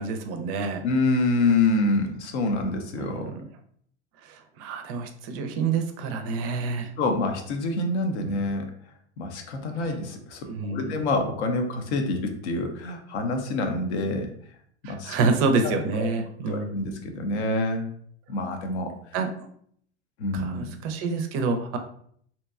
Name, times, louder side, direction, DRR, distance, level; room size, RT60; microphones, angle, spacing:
voice 1, 0.0-0.8 3.0-3.4 4.2-6.9 8.3-8.4 9.8-9.9 10.5-11.0 14.8-16.8 19.1-19.3 20.3-21.8, right 4 dB, 40° right, 6 dB, 0.4 m, -28 dB
voice 2, 0.8-3.3 7.0-8.7 9.2-14.3 14.8-15.2 15.6-16.1 16.5-17.9 18.3-18.9 20.2-20.7, left 2 dB, 75° left, 5 dB, 0.6 m, -26 dB
2.7 x 2.2 x 2.3 m, 0.63 s
hypercardioid pair, 90°, 35 cm